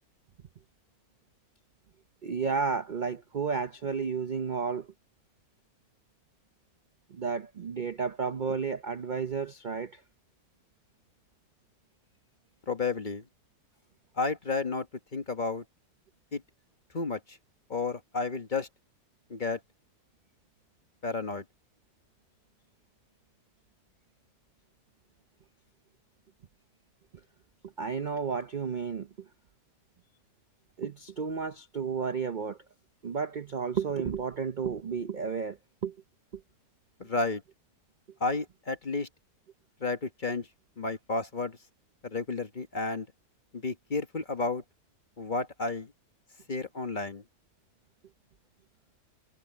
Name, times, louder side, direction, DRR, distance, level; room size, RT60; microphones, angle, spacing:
voice 1, 2.2-4.9 7.1-10.0 27.8-29.1 30.8-32.6 33.0-36.0, right 5 dB, 50° right, 0.6 m, -32 dB
voice 2, 12.7-13.2 14.2-14.9 15.1-15.6 16.3-16.4 16.9-17.4 17.7-18.7 19.3-19.6 21.0-21.4 37.0-37.4 38.2-39.1 39.8-40.5 40.8-41.6 42.0-43.1 43.5-44.6 45.2-45.9 46.5-47.2, left 3 dB, 35° left, 1.2 m, -31 dB
omnidirectional pair, 1.7 m